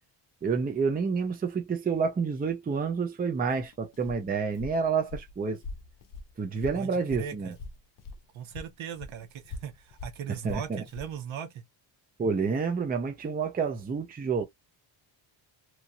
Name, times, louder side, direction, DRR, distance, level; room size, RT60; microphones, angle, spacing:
voice 1, 0.4-5.6 6.4-7.5 10.4-10.8 12.2-14.4, right 5 dB, 20° right, 0.5 m, -29 dB
Walk footsteps, 3.5-8.2 8.5-11.1, left 3 dB, 45° left, 0.7 m, -43 dB
voice 2, 6.7-7.6 8.3-11.6, right 8 dB, 75° right, 1.0 m, -39 dB
2.9 x 2.8 x 2.4 m
wide cardioid pair, 165°, 47 cm